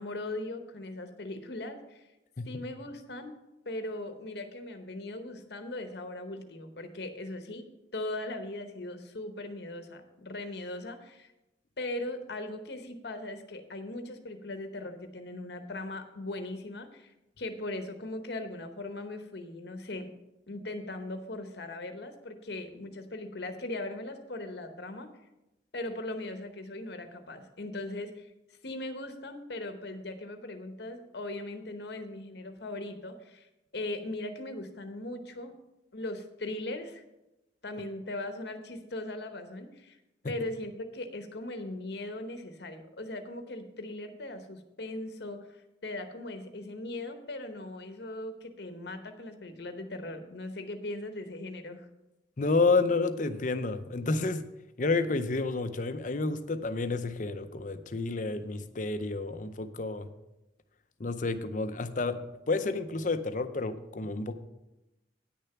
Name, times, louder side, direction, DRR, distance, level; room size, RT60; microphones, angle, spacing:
voice 1, 0.0-2.1 2.4-3.4 3.6-7.6 7.9-11.3 11.8-20.1 20.5-25.1 25.7-35.5 35.9-37.0 37.6-40.0 40.3-51.9, left 2 dB, 60° left, 7 dB, 0.9 m, -39 dB
voice 2, 52.4-54.5 54.8-60.1 61.0-64.3, left 3 dB, 45° left, 10 dB, 0.6 m, -30 dB
9.6 x 6.6 x 5.8 m, 0.96 s
head